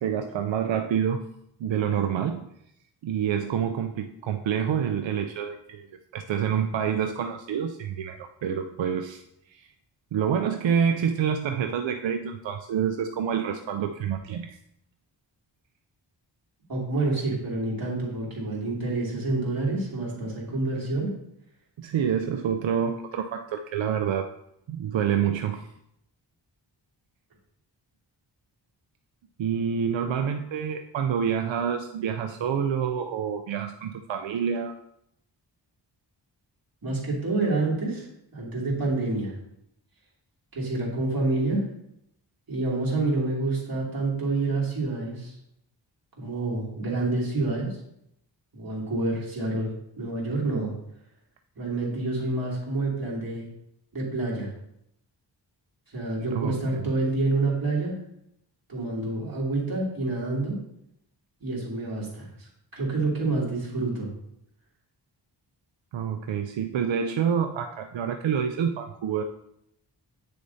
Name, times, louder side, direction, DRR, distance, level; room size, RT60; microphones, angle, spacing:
voice 1, 0.0-1.2 1.6-2.5 3.0-5.9 6.1-9.2 9.5-9.7 10.1-14.6 21.8-24.3 24.7-25.7 29.4-34.8 56.3-56.9 65.9-69.2, right 8 dB, 90° right, 6 dB, 0.5 m, -27 dB
voice 2, 16.7-21.1 36.8-38.1 38.3-39.3 40.5-41.7 42.5-45.3 46.2-47.7 48.5-49.7 50.0-50.7 51.6-53.5 53.9-54.5 55.9-57.9 58.7-60.6 61.4-64.1, right 2 dB, 50° right, -5 dB, 2.7 m, -28 dB
8.9 x 6.6 x 2.7 m, 0.76 s
wide cardioid pair, 120°, 44 cm